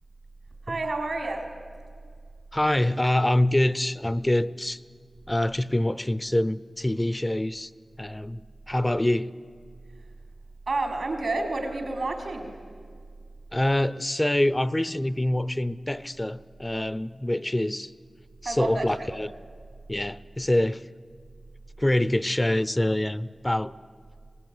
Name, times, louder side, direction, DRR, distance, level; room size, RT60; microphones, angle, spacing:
voice 1, 0.7-1.5 8.9-9.0 10.7-12.5 18.4-19.2, right 2 dB, 80° right, 4 dB, 4.3 m, -29 dB
voice 2, 2.5-4.8 5.3-7.7 8.0-9.3 13.5-17.9 18.4-19.3 19.9-20.8 21.8-23.7, left 1 dB, 20° left, 17 dB, 0.6 m, -25 dB
25.0 x 19.0 x 9.7 m, 2.1 s
wide cardioid pair, 65°, 0 cm